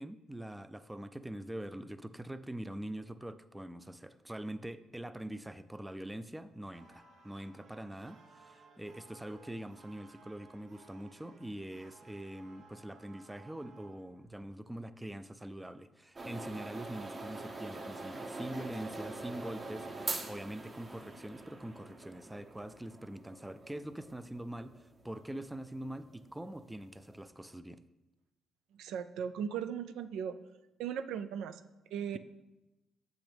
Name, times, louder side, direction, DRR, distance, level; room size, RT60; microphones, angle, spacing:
voice 1, 0.0-27.8, right 1 dB, 10° right, 12 dB, 0.3 m, -44 dB
sound 1, 6.7-14.5, right 4 dB, 65° right, 0.9 m, -60 dB
sound 2, 16.2-27.3, right 2 dB, 35° right, 0.9 m, -44 dB
voice 2, 28.7-30.4 30.8-31.6 31.9-32.2, right 8 dB, 90° right, 10 dB, 0.3 m, -37 dB
7.8 x 6.1 x 3.4 m, 1.0 s
cardioid pair, 90°, 0 cm